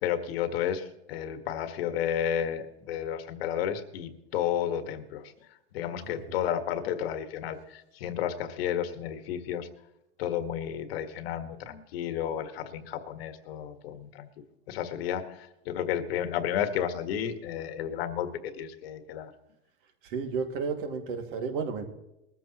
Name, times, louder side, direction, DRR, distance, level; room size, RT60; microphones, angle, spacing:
voice 1, 0.0-5.3 5.7-9.7 10.2-14.3 14.7-19.3, left 9 dB, 60° left, 8 dB, 1.7 m, -32 dB
voice 2, 20.0-21.9, right 5 dB, 50° right, 5 dB, 2.3 m, -32 dB
21.0 x 14.0 x 3.0 m, 0.88 s
supercardioid pair, 150°, 33 cm